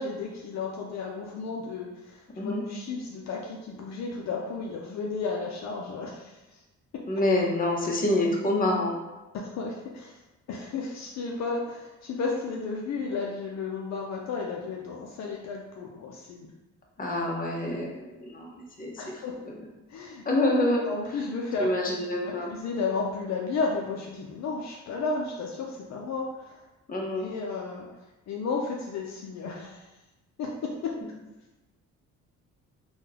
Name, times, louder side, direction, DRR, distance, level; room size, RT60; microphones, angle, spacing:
voice 1, 0.0-6.6 9.3-10.2 10.5-16.5 19.0-19.4 19.9-20.2 20.8-21.7 22.2-26.6 27.2-27.9 28.3-29.9 30.4-31.0, left 4 dB, 60° left, -1 dB, 0.5 m, -33 dB
voice 2, 7.1-9.0 17.0-18.5 18.8-18.9 19.4-19.5 20.3-20.8 21.6-22.5 26.9-27.3, left 1 dB, 30° left, -1 dB, 0.8 m, -26 dB
3.5 x 2.3 x 2.9 m, 1.1 s
cardioid pair, 90°, 30 cm